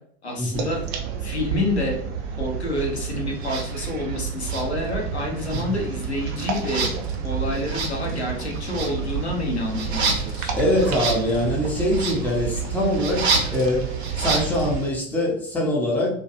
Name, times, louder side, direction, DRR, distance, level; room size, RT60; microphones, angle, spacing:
voice 1, 0.2-0.8 1.2-2.0 2.4-6.9 7.2-10.8, left 1 dB, 90° left, 0 dB, 0.7 m, -28 dB
sound 1, 0.5-14.8, right 7 dB, 35° right, 0.4 m, -30 dB
sound 2, 3.4-3.7 4.4-5.2 5.4-14.9, right 3 dB, 85° right, 0.5 m, -30 dB
voice 2, 10.5-16.1, left 1 dB, 5° left, -3 dB, 0.6 m, -23 dB
2.3 x 2.2 x 2.8 m, 0.65 s
figure-of-eight pair, 80°, 32 cm